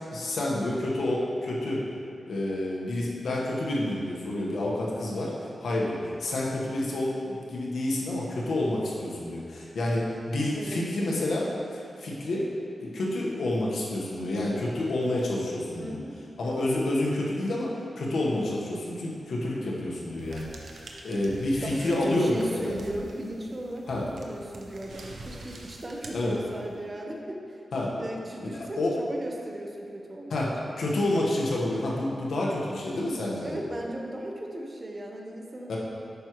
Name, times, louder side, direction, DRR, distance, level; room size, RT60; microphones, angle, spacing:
voice 1, 0.1-1.8 2.3-12.5 12.8-16.0 16.4-22.8 23.9-24.1 26.1-26.4 27.7-27.9 28.6-28.9 30.3-33.5 35.7-35.8, left 1 dB, 80° left, -4 dB, 1.3 m, -29 dB
voice 2, 10.5-11.1 15.8-16.2 21.6-27.6 28.0-30.4 33.4-35.8, right 1 dB, 35° right, 0 dB, 1.0 m, -36 dB
sound 1, 20.2-26.8, right 2 dB, 75° right, 0.8 m, -46 dB
8.7 x 6.0 x 3.1 m, 2.5 s
cardioid pair, 80°, 0 cm